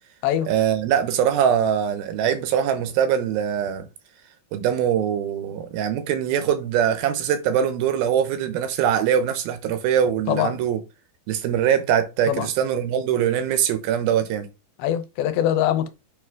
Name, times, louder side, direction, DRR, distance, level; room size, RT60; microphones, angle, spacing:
voice 1, 0.5-3.9 4.5-10.8 11.3-14.5, right 9 dB, 85° right, 2.8 m, -22 dB
voice 2, 14.8-15.9, left 11 dB, 85° left, 2.6 m, -22 dB
7.3 x 3.3 x 4.8 m
omnidirectional pair, 4.3 m